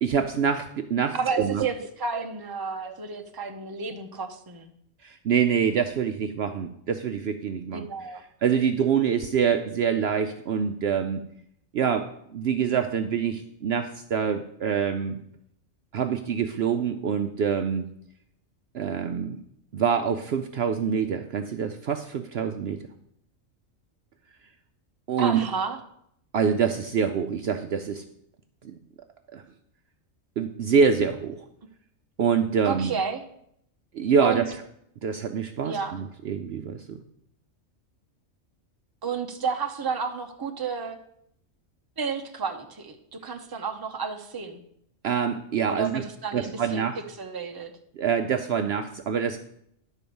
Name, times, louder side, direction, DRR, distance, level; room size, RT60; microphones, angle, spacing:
voice 1, 0.0-1.7 2.9-3.0 5.0-7.9 8.4-11.2 11.7-15.2 15.9-17.9 18.7-19.4 19.7-22.8 25.1-25.4 26.3-28.0 28.6-28.8 29.3-29.4 30.4-31.4 32.2-32.9 33.9-34.4 35.0-37.0 45.0-46.0 46.3-47.0 48.0-49.4, right 7 dB, 60° right, 7 dB, 0.7 m, -25 dB
voice 2, 1.1-4.7 7.7-8.2 25.2-25.8 32.6-33.2 34.2-34.4 35.6-36.0 39.0-41.0 42.0-44.6 45.7-46.8 47.2-47.7, right 5 dB, 20° right, 5 dB, 0.7 m, -31 dB
10.5 x 4.6 x 6.9 m, 0.72 s
omnidirectional pair, 1.3 m